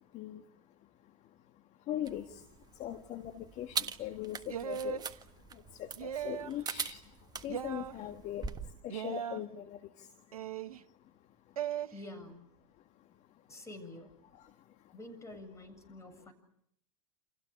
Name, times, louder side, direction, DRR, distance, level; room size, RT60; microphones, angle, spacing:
voice 1, 1.9-2.2 2.8-5.0 5.8-7.0 7.4-8.4 8.8-9.8, left 12 dB, 40° left, 7 dB, 1.7 m, -40 dB
sound 1, 2.0-8.7, right 6 dB, 20° right, 1.6 m, -42 dB
sound 2, 4.5-5.1 6.0-6.6 7.5-7.9 8.9-9.4 10.3-10.8 11.6-11.9, right 9 dB, 75° right, 1.1 m, -38 dB
voice 2, 11.9-12.4 13.5-14.1 14.9-16.3, left 1 dB, 15° left, 7 dB, 7.8 m, -48 dB
29.5 x 28.5 x 6.6 m, 0.74 s
hypercardioid pair, 95°, 19 cm